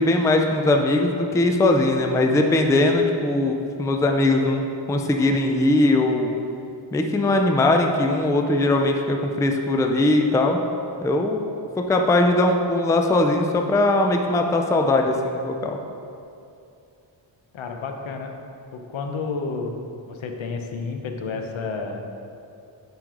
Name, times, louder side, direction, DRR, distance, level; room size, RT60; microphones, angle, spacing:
voice 1, 0.0-6.3 6.9-10.6 11.0-11.4 11.8-15.8, left 2 dB, 10° left, 3 dB, 0.3 m, -20 dB
voice 2, 17.5-18.3 18.7-19.8 20.1-22.0, left 4 dB, 80° left, 4 dB, 0.8 m, -30 dB
7.5 x 5.3 x 3.7 m, 2.6 s
wide cardioid pair, 145°, 46 cm